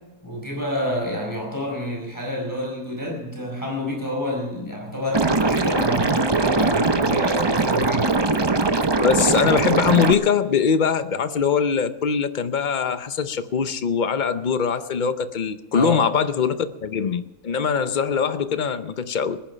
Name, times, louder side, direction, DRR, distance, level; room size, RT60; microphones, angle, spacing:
voice 1, 0.2-8.2 15.7-16.1, equal, 10° left, -1 dB, 4.8 m, -28 dB
Liquid, 5.1-10.1, right 3 dB, 30° right, 0.4 m, -21 dB
voice 2, 9.0-19.4, left 6 dB, 50° left, 11 dB, 0.5 m, -22 dB
20.0 x 10.5 x 5.6 m, 1.1 s
omnidirectional pair, 1.7 m